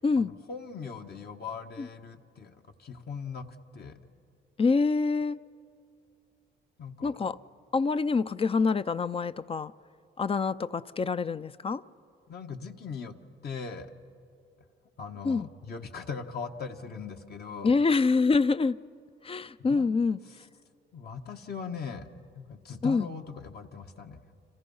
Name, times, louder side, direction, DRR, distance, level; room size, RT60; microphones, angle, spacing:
voice 1, 0.2-4.0 6.8-7.1 12.3-13.2 13.4-13.9 15.0-17.7 19.6-19.9 20.9-22.1 22.3-24.2, left 5 dB, 55° left, 1.5 m, -40 dB
voice 2, 4.6-5.4 7.0-7.4 7.7-9.7 10.2-11.8 15.2-15.5 17.6-18.8 19.2-20.2 22.8-23.1, left 4 dB, 30° left, 0.5 m, -26 dB
29.5 x 26.5 x 5.6 m
cardioid pair, 90°, 20 cm